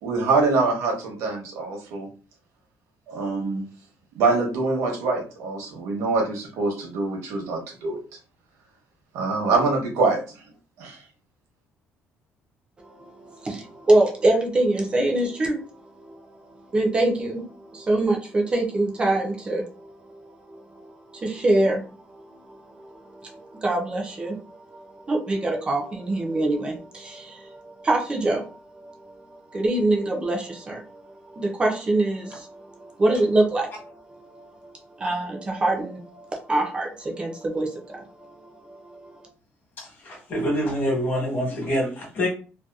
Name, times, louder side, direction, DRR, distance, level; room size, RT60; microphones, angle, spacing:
voice 1, 0.0-2.1 3.1-3.7 4.1-8.0 9.1-10.4 10.8-11.0, right 3 dB, 80° right, 1 dB, 0.9 m, -24 dB
voice 2, 12.8-39.3, right 2 dB, 20° right, 1 dB, 0.5 m, -26 dB
voice 3, 39.8-42.3, equal, 45° left, -1 dB, 1.1 m, -26 dB
2.7 x 2.1 x 2.3 m, 0.38 s
cardioid pair, 155°, 5 cm